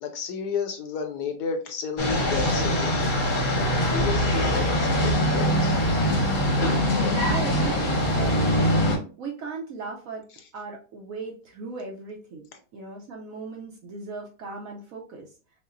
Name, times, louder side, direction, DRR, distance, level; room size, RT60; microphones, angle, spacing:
voice 1, 0.0-3.0 3.9-6.3 6.9-7.2, left 5 dB, 70° left, 5 dB, 1.2 m, -32 dB
sound 1, 2.0-9.0, equal, 35° left, 0.9 m, -23 dB
voice 2, 7.3-8.9 9.2-10.2 10.5-12.4 12.7-15.3, right 4 dB, 65° right, 1 dB, 0.9 m, -37 dB
5.5 x 2.0 x 2.5 m, 0.37 s
omnidirectional pair, 1.9 m